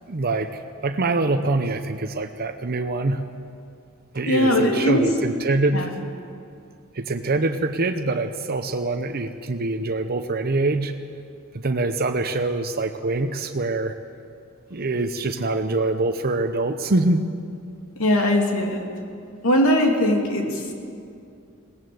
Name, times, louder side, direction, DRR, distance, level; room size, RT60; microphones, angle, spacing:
voice 1, 0.1-3.2 4.1-5.9 6.9-10.9 11.5-14.0 14.7-17.2, right 2 dB, 45° right, 8 dB, 0.8 m, -24 dB
voice 2, 4.3-5.0 5.7-5.9 18.0-18.8 19.4-20.7, left 1 dB, 85° left, 2 dB, 2.9 m, -20 dB
20.5 x 18.0 x 7.9 m, 2.4 s
head